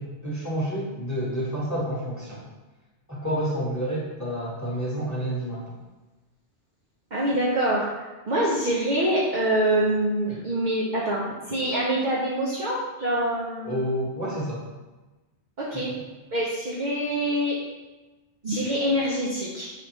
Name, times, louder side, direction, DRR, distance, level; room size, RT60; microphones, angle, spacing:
voice 1, 0.0-2.4 3.1-5.6 10.3-10.4 13.7-14.6 15.7-16.0, equal, 15° left, -7 dB, 1.2 m, -29 dB
voice 2, 7.1-7.9 8.3-13.8 15.6-16.0 16.3-17.6 18.4-19.7, right 1 dB, 50° right, -6 dB, 0.7 m, -25 dB
4.8 x 3.4 x 3.1 m, 1.2 s
omnidirectional pair, 1.2 m